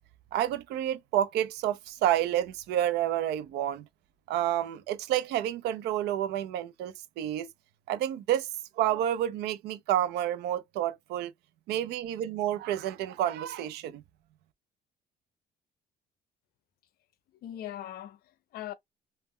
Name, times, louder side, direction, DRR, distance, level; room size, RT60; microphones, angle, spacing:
voice 1, 0.3-3.9 4.3-7.5 7.9-8.5 8.8-11.3 11.7-14.0, right 11 dB, 80° right, 0.4 m, -29 dB
voice 2, 17.4-18.7, left 12 dB, 65° left, 0.5 m, -40 dB
2.1 x 2.1 x 3.5 m
cardioid pair, 110°, 17 cm